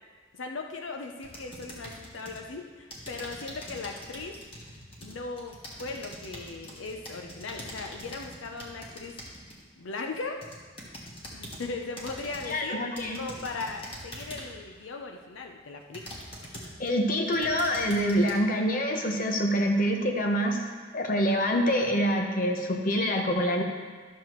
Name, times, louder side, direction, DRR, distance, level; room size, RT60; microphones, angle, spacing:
voice 1, 0.3-4.4 5.0-9.2 9.8-10.4 11.3-12.8 13.2-16.1, left 3 dB, 85° left, 3 dB, 0.6 m, -38 dB
sound 1, 1.2-2.5 2.9-9.6 10.1-11.7 12.0-12.6 13.0-14.6 15.2-15.3 15.9-16.9 17.3-18.3, equal, 30° left, 1.4 m, -43 dB
voice 2, 12.5-13.2 16.8-20.6 20.9-23.6, equal, 45° left, 2 dB, 0.9 m, -26 dB
12.0 x 6.7 x 3.1 m, 1.5 s
head